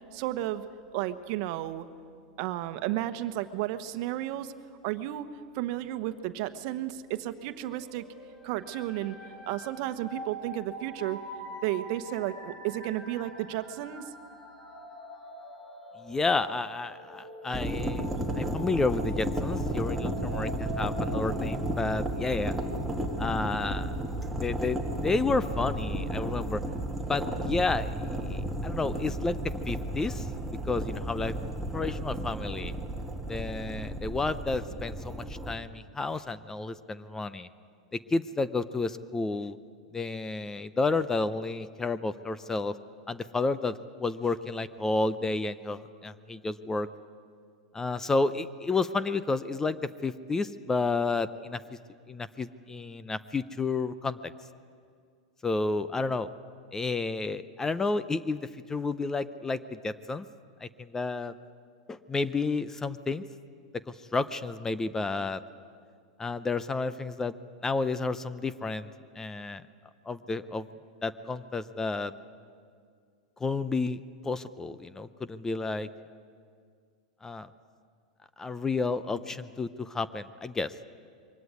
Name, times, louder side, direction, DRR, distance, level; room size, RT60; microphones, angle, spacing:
voice 1, 0.1-0.6 0.9-1.9 2.4-4.5 4.8-5.3 5.5-8.1 8.4-9.2 9.4-11.2 11.6-14.1, right 14 dB, 55° right, 10 dB, 1.1 m, -33 dB
sound 1, 7.6-22.8, equal, 35° left, 5.4 m, -45 dB
voice 2, 16.0-18.1 18.3-22.6 23.2-23.9 24.4-26.6 27.1-27.9 28.3-30.3 30.7-31.3 31.7-32.7 33.3-37.5 37.9-39.6 39.9-42.8 43.1-46.9 47.7-51.6 52.1-54.3 55.4-56.3 56.7-60.2 60.6-61.3 61.9-63.2 63.7-65.4 66.2-67.4 67.6-68.9 69.2-69.6 70.1-70.7 71.0-72.1 73.4-75.9 77.2-77.5 78.4-80.7, left 3 dB, 15° left, 14 dB, 0.6 m, -31 dB
sound 2, 17.5-35.5, right 1 dB, ahead, 2.0 m, -33 dB
23.0 x 17.5 x 9.7 m, 2.2 s
supercardioid pair, 130°, 4 cm